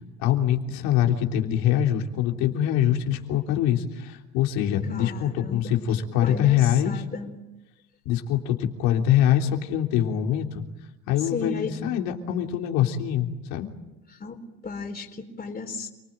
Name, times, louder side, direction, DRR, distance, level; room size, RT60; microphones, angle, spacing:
voice 1, 0.2-7.0 8.1-10.6 11.1-13.7, left 10 dB, 75° left, 3 dB, 3.5 m, -24 dB
voice 2, 4.9-5.8 6.2-7.3 11.2-11.8 14.1-14.4 14.6-15.9, left 4 dB, 25° left, 3 dB, 4.0 m, -34 dB
30.0 x 20.0 x 9.2 m, 0.99 s
supercardioid pair, 105°, 34 cm